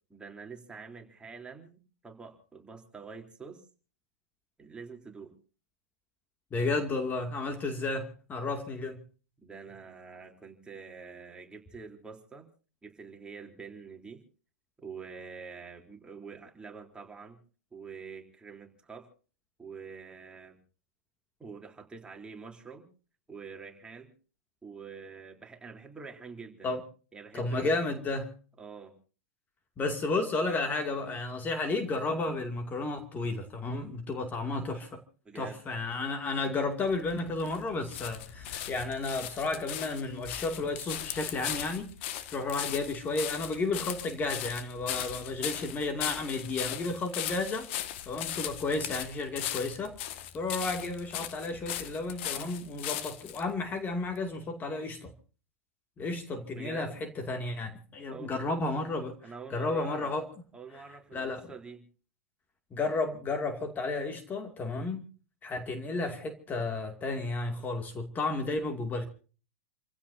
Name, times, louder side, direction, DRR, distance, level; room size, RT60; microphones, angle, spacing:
voice 1, 0.1-3.6 4.6-5.4 9.4-12.5 12.8-14.2 14.8-17.4 17.7-19.1 19.6-20.6 21.4-22.9 23.3-24.1 24.6-26.7 27.1-27.8 28.6-28.9 35.2-35.6 56.6-57.0 58.1-58.3 59.2-60.1 60.5-61.8, right 5 dB, 10° right, 3.6 m, -46 dB
voice 2, 6.5-9.0 26.6-26.8 27.3-28.3 29.8-35.0 35.3-41.9 42.3-47.7 48.1-55.1 56.0-60.3 61.1-61.5 62.7-65.0 65.4-69.0, left 3 dB, 25° left, 2.5 m, -32 dB
sound 1, 36.9-53.4 54.1-54.2, left 12 dB, 55° left, 1.7 m, -38 dB
29.0 x 16.0 x 2.7 m
hypercardioid pair, 105°, 8 cm